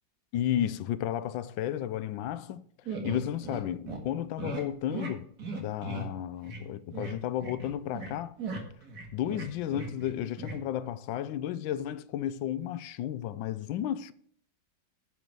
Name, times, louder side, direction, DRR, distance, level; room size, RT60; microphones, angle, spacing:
voice 1, 0.3-2.6 3.0-8.4 9.1-14.1, left 11 dB, 85° left, 1.3 m, -33 dB
sound 1, 2.9-3.6 3.9-4.0 4.4-4.6 4.9-5.1 5.4-6.1 6.4-6.6 6.9-7.1 7.4-8.1 8.4-10.1 10.4-10.6, right 3 dB, 55° right, 2.4 m, -37 dB
10.5 x 5.3 x 7.7 m
omnidirectional pair, 2.0 m